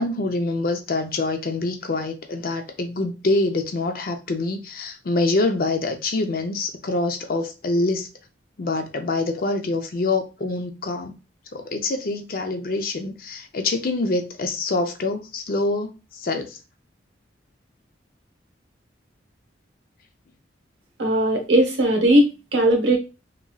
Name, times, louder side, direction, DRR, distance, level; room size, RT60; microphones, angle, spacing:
voice 1, 0.0-8.1 8.6-11.2 11.5-16.6, left 2 dB, 50° left, 0.5 m, -25 dB
voice 2, 21.0-23.0, right 1 dB, 75° right, 0.9 m, -18 dB
2.9 x 2.6 x 2.2 m
head